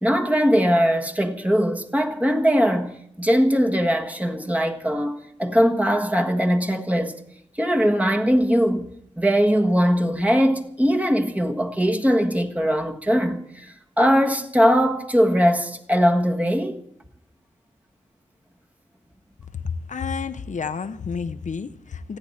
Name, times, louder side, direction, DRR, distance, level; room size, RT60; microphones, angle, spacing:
voice 1, 0.0-7.2 7.6-8.9 9.2-16.8, equal, 10° right, 1.5 m, -20 dB
voice 2, 19.6-22.2, left 5 dB, 75° left, 0.8 m, -30 dB
29.5 x 10.0 x 4.2 m
wide cardioid pair, 105°, 13 cm